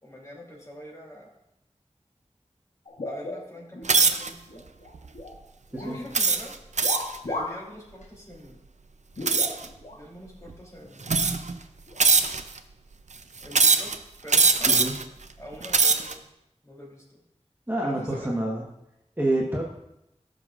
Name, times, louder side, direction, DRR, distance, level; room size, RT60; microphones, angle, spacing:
voice 1, 0.0-1.3 3.0-4.6 5.8-6.5 7.3-8.6 9.9-11.4 13.4-13.9 14.2-14.8 15.4-16.2 16.6-17.2 17.8-18.4, equal, 25° left, -3 dB, 3.1 m, -44 dB
sound 1, 2.9-3.9 4.3-5.4 5.7-6.0 6.8-7.7 8.0-8.1 9.1-10.0 10.8-10.9 11.9-12.1, left 2 dB, 80° left, 1.2 m, -35 dB
sound 2, 3.9-4.3 5.0-5.2 6.1-7.2 9.3-9.7 10.5-10.6 11.1-11.5 12.0-12.6 13.5-14.0 14.3-15.0 15.5-16.1, right 4 dB, 90° right, 0.5 m, -21 dB
voice 2, 17.7-18.6 19.2-19.6, right 1 dB, 15° right, -3 dB, 1.3 m, -27 dB
15.5 x 6.4 x 2.5 m, 0.84 s
wide cardioid pair, 50°, 12 cm